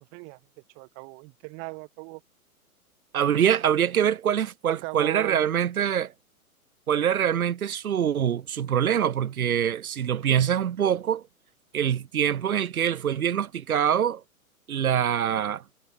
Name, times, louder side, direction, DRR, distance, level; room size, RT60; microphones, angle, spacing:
voice 1, 0.8-2.2 4.7-5.5, right 39 dB, 10° right, 0.4 m, -37 dB
voice 2, 3.1-6.1 6.9-11.2 11.7-14.2 14.7-15.6, right 9 dB, 70° right, 1.0 m, -24 dB
figure-of-eight pair, 115°, 44 cm